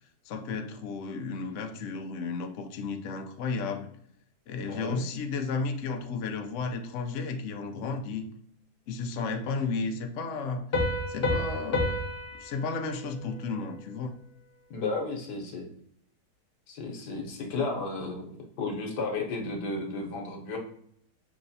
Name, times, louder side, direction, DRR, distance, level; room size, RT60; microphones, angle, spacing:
voice 1, 0.2-3.9 4.5-8.3 8.9-12.0 12.4-14.1, left 4 dB, 65° left, 5 dB, 0.8 m, -33 dB
voice 2, 4.6-5.0 14.7-15.7 16.7-18.3 18.6-20.6, left 3 dB, 85° left, 1 dB, 1.6 m, -33 dB
Piano, 10.7-14.2, left 1 dB, 40° left, 1.0 m, -31 dB
5.8 x 3.1 x 2.7 m, 0.68 s
omnidirectional pair, 1.8 m